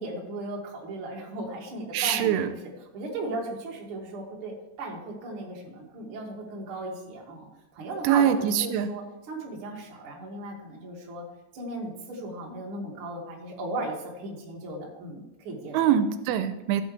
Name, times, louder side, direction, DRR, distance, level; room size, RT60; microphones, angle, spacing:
voice 1, 0.0-2.6 2.9-4.5 4.8-7.5 7.7-11.2 11.5-15.9, right 2 dB, 45° right, -2 dB, 1.8 m, -36 dB
voice 2, 1.9-2.5 8.0-8.9 15.7-16.8, right 9 dB, 85° right, 10 dB, 3.0 m, -23 dB
15.5 x 8.0 x 3.2 m, 1.1 s
omnidirectional pair, 5.5 m